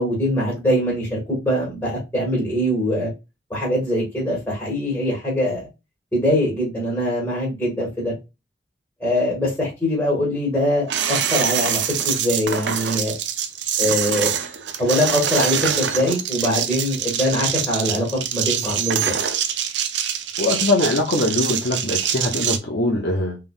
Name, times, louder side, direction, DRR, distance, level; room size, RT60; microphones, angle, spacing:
voice 1, 0.0-3.1 3.5-5.7 6.1-8.1 9.0-13.1 13.8-14.4 14.8-19.2, equal, 10° left, 1.7 m, -22 dB
sound 1, 10.9-22.6, right 9 dB, 85° right, 0.6 m, -24 dB
voice 2, 20.4-23.4, left 2 dB, 65° left, 0.8 m, -22 dB
3.7 x 3.4 x 2.4 m
head